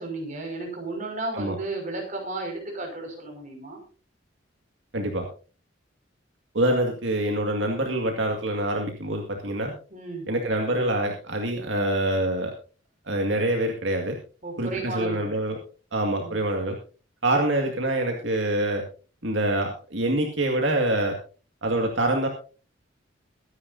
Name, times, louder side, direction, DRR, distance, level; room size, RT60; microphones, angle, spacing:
voice 1, 0.0-3.8 9.9-10.3 14.4-15.4 16.2-16.4, right 2 dB, 40° right, 2 dB, 5.7 m, -33 dB
voice 2, 4.9-5.2 6.5-9.7 10.3-12.5 13.1-14.1 14.6-15.6 15.9-16.8 17.2-18.8 19.2-21.1 21.6-22.3, right 1 dB, 70° right, 2 dB, 2.1 m, -25 dB
23.5 x 9.9 x 2.7 m, 0.36 s
head